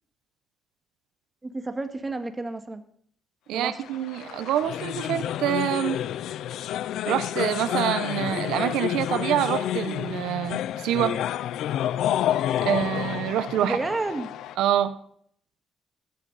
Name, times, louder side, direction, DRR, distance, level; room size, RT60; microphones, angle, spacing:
voice 1, 1.4-2.8 3.5-3.8 13.6-14.3, right 2 dB, 20° right, 7 dB, 1.8 m, -30 dB
voice 2, 3.5-6.0 7.1-11.2 12.6-13.8 14.6-15.0, right 11 dB, 90° right, 12 dB, 0.7 m, -26 dB
sound 1, 3.8-14.6, left 11 dB, 80° left, 0.4 m, -29 dB
14.0 x 11.5 x 4.1 m, 0.63 s
cardioid pair, 90°, 0 cm